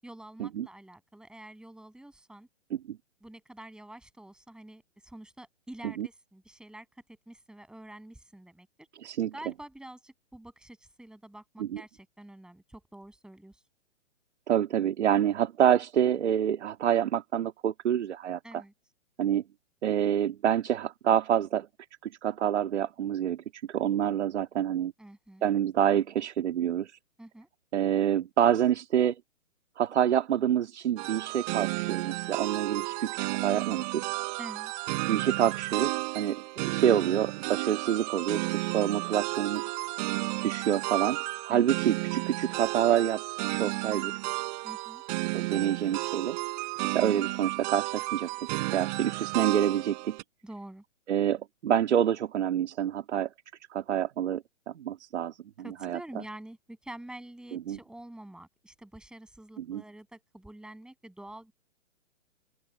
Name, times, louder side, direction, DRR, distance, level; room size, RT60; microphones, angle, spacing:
voice 1, 0.0-2.5 3.2-8.9 9.3-13.6 18.4-18.7 25.0-25.4 27.2-27.5 34.4-34.7 41.5-41.7 44.6-45.0 50.4-50.8 55.6-61.5, right 1 dB, ahead, 7.2 m, -47 dB
voice 2, 9.0-9.3 11.6-11.8 14.5-18.6 19.2-19.4 19.8-21.7 22.0-24.9 25.4-26.9 27.7-29.2 29.8-34.1 35.1-39.7 40.4-43.2 43.5-44.1 45.3-46.4 46.8-48.3 48.7-50.2 51.1-53.3 53.7-55.4 55.8-56.0 57.5-57.8 59.6-59.8, right 10 dB, 60° right, 1.9 m, -27 dB
sound 1, 31.0-50.2, right 25 dB, 35° right, 3.8 m, -32 dB
open air
figure-of-eight pair, 130°, 38 cm